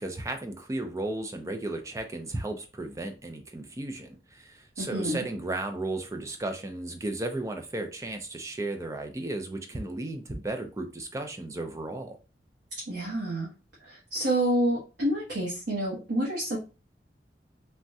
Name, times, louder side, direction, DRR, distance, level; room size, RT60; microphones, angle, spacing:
voice 1, 0.0-12.2, right 2 dB, 15° right, 5 dB, 0.4 m, -34 dB
voice 2, 4.8-5.3 12.9-13.5 13.8-16.6, right 1 dB, 80° right, -5 dB, 0.9 m, -28 dB
3.4 x 2.1 x 2.6 m, 0.31 s
head